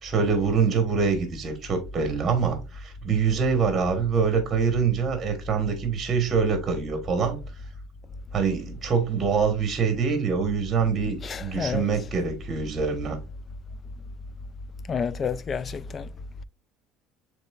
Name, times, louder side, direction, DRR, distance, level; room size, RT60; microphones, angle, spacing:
voice 1, 0.0-7.4 8.3-13.2, right 5 dB, 30° right, 1.2 m, -25 dB
voice 2, 11.2-11.8 14.9-16.1, left 6 dB, 30° left, 0.3 m, -29 dB
6.9 x 3.3 x 2.3 m
cardioid pair, 130°, 0 cm